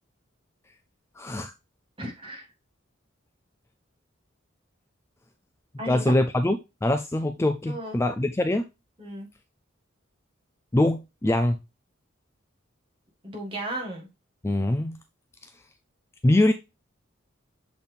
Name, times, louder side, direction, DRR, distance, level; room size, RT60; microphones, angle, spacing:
voice 1, 1.2-1.5 5.9-8.6 10.7-11.6 14.4-15.0 16.2-16.5, left 1 dB, 15° left, 0.3 m, -23 dB
voice 2, 2.0-2.5 5.8-6.1 7.7-8.0 9.0-9.3 13.2-14.1, right 1 dB, 25° right, 1.8 m, -35 dB
7.1 x 4.1 x 3.4 m
head